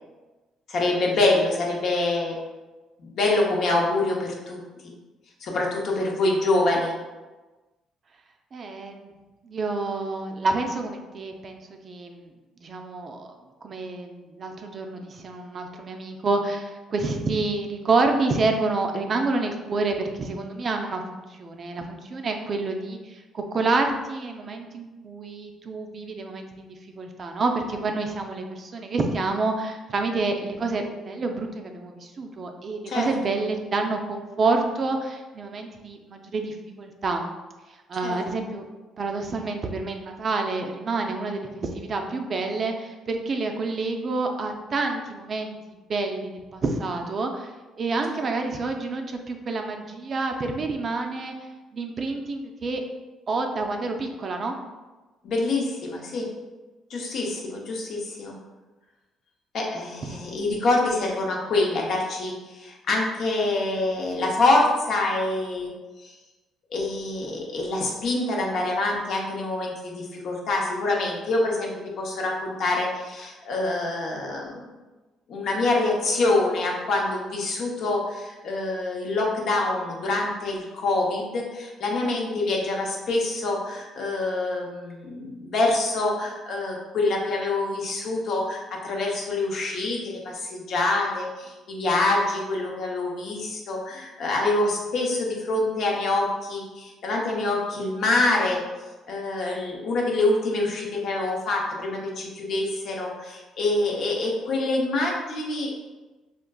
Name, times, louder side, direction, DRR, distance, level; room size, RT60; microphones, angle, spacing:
voice 1, 0.7-2.4 3.0-4.9 5.4-6.9 32.9-33.1 38.0-38.2 48.1-48.2 55.2-56.3 56.9-58.3 59.5-65.7 66.0-66.1 66.7-74.6 75.3-98.6 99.1-105.7, left 2 dB, 65° left, -1 dB, 0.7 m, -25 dB
voice 2, 8.5-9.1 9.4-12.3 12.6-13.3 13.6-37.2 37.9-38.7 39.0-45.6 45.9-51.3 51.7-52.8 53.3-54.6 60.0-60.2, right 3 dB, 45° right, 4 dB, 0.4 m, -28 dB
3.7 x 2.4 x 2.2 m, 1.2 s
cardioid pair, 95°, 0 cm